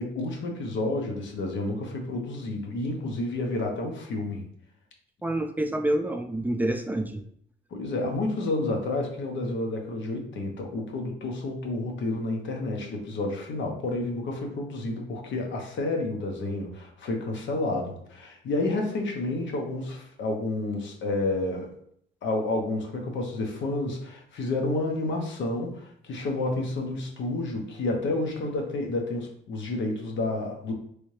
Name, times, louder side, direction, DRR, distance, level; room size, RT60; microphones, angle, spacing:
voice 1, 0.0-4.4 7.7-21.7 22.2-30.7, left 2 dB, 70° left, 2 dB, 0.9 m, -30 dB
voice 2, 5.2-7.2, right 1 dB, 10° right, 5 dB, 0.4 m, -27 dB
3.3 x 2.7 x 3.2 m, 0.67 s
cardioid pair, 90°, 20 cm